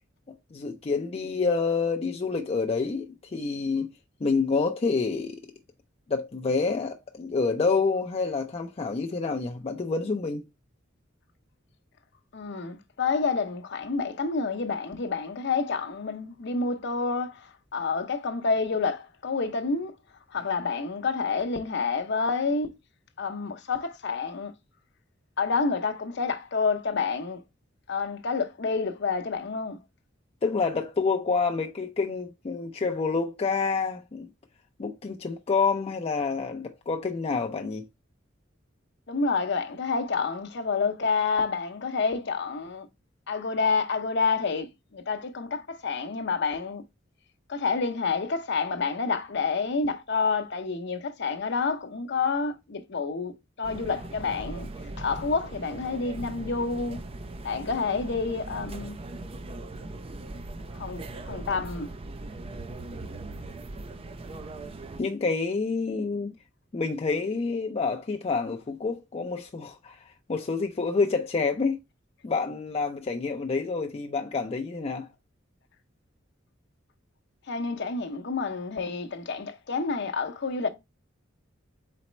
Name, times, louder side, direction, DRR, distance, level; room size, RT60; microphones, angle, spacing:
voice 1, 0.5-3.9 4.2-5.4 6.1-10.4 30.4-34.3 34.8-37.8 65.0-66.3 66.7-71.8 72.2-75.1, left 4 dB, 30° left, 0.4 m, -28 dB
voice 2, 12.3-19.9 20.3-22.7 23.2-24.5 25.4-27.4 27.9-29.8 39.1-42.9 43.3-46.8 47.5-53.3 53.6-54.7 55.0-57.0 57.4-58.9 60.7-61.9 77.5-80.7, left 4 dB, 60° left, 0.7 m, -28 dB
sound 1, 53.6-65.0, right 2 dB, 30° right, 0.4 m, -39 dB
4.2 x 4.1 x 3.0 m
head